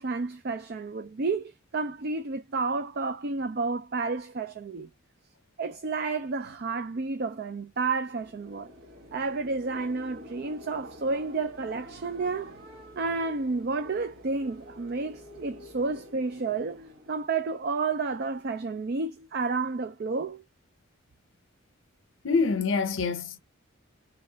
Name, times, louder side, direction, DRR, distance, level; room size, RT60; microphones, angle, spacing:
voice 1, 0.0-4.9 5.6-8.7 9.1-12.5 12.9-20.4, right 4 dB, 50° right, 0.4 m, -31 dB
sound 1, 8.1-17.3, left 1 dB, 70° right, 1.2 m, -49 dB
voice 2, 22.2-23.4, left 4 dB, 65° left, 0.8 m, -26 dB
3.2 x 3.1 x 3.9 m
head